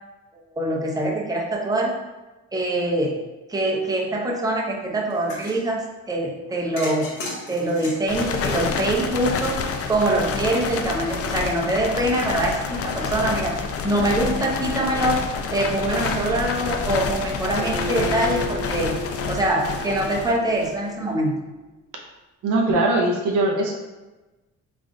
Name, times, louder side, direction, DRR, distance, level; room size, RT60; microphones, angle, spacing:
voice 1, 0.3-1.9 2.5-3.2 3.5-5.8 6.1-7.1 7.5-9.6 9.9-15.2 15.5-19.0 19.3-21.4, right 1 dB, 10° right, -1 dB, 0.7 m, -24 dB
sound 1, 5.1-5.6 6.8-9.3, left 2 dB, 80° left, 1.1 m, -35 dB
sound 2, 8.1-20.9, left 5 dB, 50° left, 0.5 m, -28 dB
Acoustic guitar, 17.6-21.0, right 1 dB, 30° right, 1.1 m, -34 dB
voice 2, 22.4-23.7, right 2 dB, 85° right, 1 dB, 0.7 m, -20 dB
3.6 x 2.5 x 3.7 m, 1.1 s
cardioid pair, 90°, 30 cm